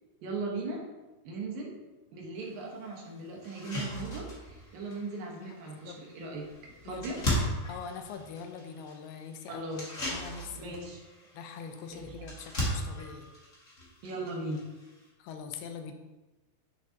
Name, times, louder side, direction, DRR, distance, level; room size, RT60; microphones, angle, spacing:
voice 1, 0.2-0.8 1.2-1.7 2.1-7.2 9.5-10.0 10.6-11.0 12.1-12.3 14.0-14.6, right 2 dB, 70° right, -1 dB, 2.9 m, -38 dB
sound 1, 2.4-2.5 3.0-3.1 3.4-15.1, equal, 30° left, 1.4 m, -38 dB
voice 2, 5.4-6.0 6.8-9.7 10.1-10.8 11.3-13.3 15.2-15.9, left 6 dB, 90° left, 6 dB, 2.7 m, -43 dB
11.0 x 6.5 x 2.9 m, 1.1 s
omnidirectional pair, 4.4 m